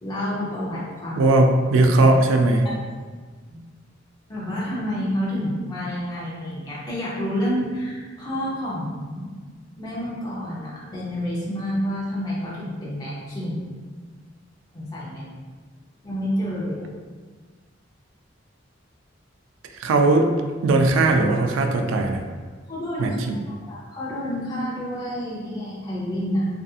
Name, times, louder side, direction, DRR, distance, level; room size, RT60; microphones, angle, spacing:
voice 1, 0.0-1.2 2.6-2.8 3.5-3.6 4.3-9.3 9.8-13.7 14.7-15.3 16.0-16.9 22.7-23.1 23.4-26.5, equal, 20° left, -8 dB, 0.5 m, -29 dB
voice 2, 1.2-2.7 19.8-20.3 20.6-22.2 23.0-23.4, right 2 dB, 80° right, 5 dB, 0.3 m, -18 dB
2.6 x 2.4 x 2.3 m, 1.5 s
head